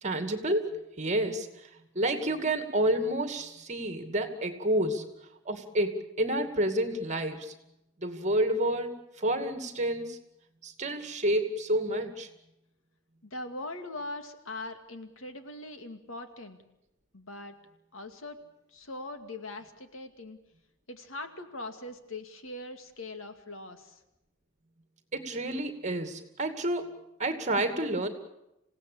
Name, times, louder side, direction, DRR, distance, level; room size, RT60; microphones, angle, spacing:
voice 1, 0.0-5.1 5.4-7.5 8.0-10.2 10.6-12.3 25.1-28.1, right 1 dB, 35° right, 8 dB, 2.4 m, -29 dB
voice 2, 13.2-16.6 17.1-17.6 17.9-18.4 18.7-20.4 20.9-24.0, left 2 dB, 80° left, 7 dB, 2.3 m, -41 dB
27.5 x 17.0 x 8.6 m, 0.88 s
head